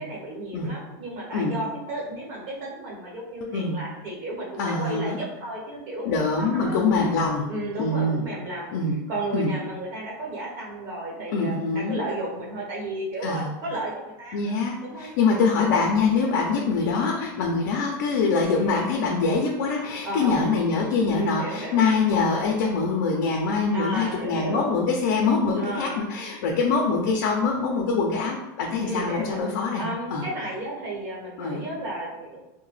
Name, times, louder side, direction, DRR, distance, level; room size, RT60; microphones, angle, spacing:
voice 1, 0.0-6.1 6.4-6.9 7.5-8.7 9.1-15.5 16.3-16.5 18.6-18.8 20.0-20.5 21.1-21.8 23.7-24.7 25.6-26.0 28.8-29.4 29.8-32.4, right 1 dB, 50° right, -4 dB, 1.1 m, -33 dB
voice 2, 4.6-5.2 6.0-7.5 7.8-8.2 8.7-9.0 9.3-9.5 11.3-12.0 13.2-13.5 14.3-29.9 30.1-30.2 31.4-31.6, left 4 dB, 65° left, 0 dB, 0.5 m, -24 dB
2.8 x 2.1 x 3.1 m, 1.0 s
supercardioid pair, 160°, 10 cm